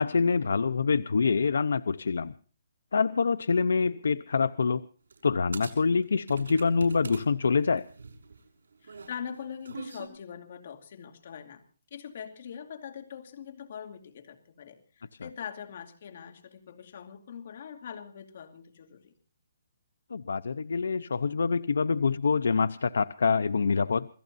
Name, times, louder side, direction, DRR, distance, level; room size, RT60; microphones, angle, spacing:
voice 1, 0.0-2.3 2.9-4.8 5.2-7.9 15.2-15.3 20.1-24.1, left 5 dB, 85° left, 14 dB, 0.6 m, -26 dB
sound 1, 5.1-5.2 5.5-7.2 7.6-10.1, right 4 dB, 90° right, 6.3 m, -42 dB
voice 2, 8.8-11.6 11.9-19.1, left 8 dB, 45° left, 6 dB, 2.5 m, -42 dB
28.0 x 16.5 x 2.6 m, 0.42 s
hypercardioid pair, 170°, 0 cm